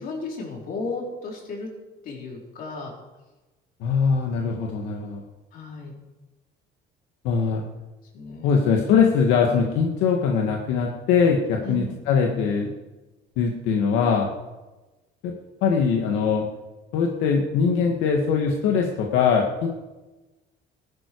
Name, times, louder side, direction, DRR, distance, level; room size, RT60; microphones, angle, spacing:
voice 1, 0.0-1.7 2.0-2.9 5.5-6.0 8.1-8.8 11.6-12.0, left 3 dB, 45° left, -1 dB, 4.5 m, -34 dB
voice 2, 3.8-5.2 7.2-7.6 8.4-12.7 13.4-14.3 15.2-15.3 15.6-16.5 16.9-19.7, left 6 dB, 75° left, 1 dB, 2.0 m, -22 dB
19.0 x 12.0 x 4.8 m, 1.1 s
cardioid pair, 170°, 20 cm